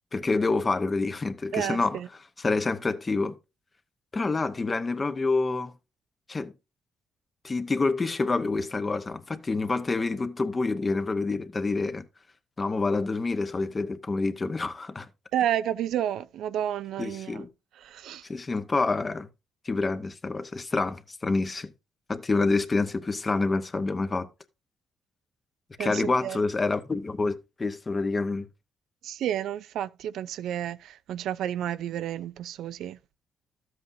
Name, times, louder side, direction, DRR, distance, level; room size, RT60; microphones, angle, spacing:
voice 1, 0.1-2.0 2.4-3.3 4.1-5.7 6.3-6.5 7.4-12.0 12.6-15.1 17.0-17.5 18.3-19.3 19.6-21.7 22.1-24.3 25.8-28.5, left 3 dB, 30° left, 0.9 m, -27 dB
voice 2, 1.5-2.1 15.3-17.5 17.8-18.3 25.8-26.4 29.0-33.0, right 11 dB, 80° right, 0.4 m, -31 dB
12.5 x 7.8 x 2.7 m
cardioid pair, 90°, 0 cm